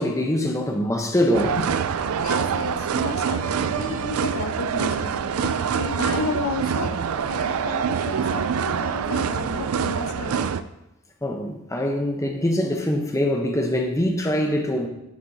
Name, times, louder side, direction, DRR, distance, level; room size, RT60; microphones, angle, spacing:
voice 1, 0.0-1.6 11.2-14.9, left 1 dB, 15° left, 0.8 m, -23 dB
sound 1, 1.3-10.6, right 7 dB, 80° right, 0.4 m, -25 dB
voice 2, 2.1-10.7, left 3 dB, 80° left, 0.9 m, -32 dB
10.5 x 8.3 x 2.7 m
head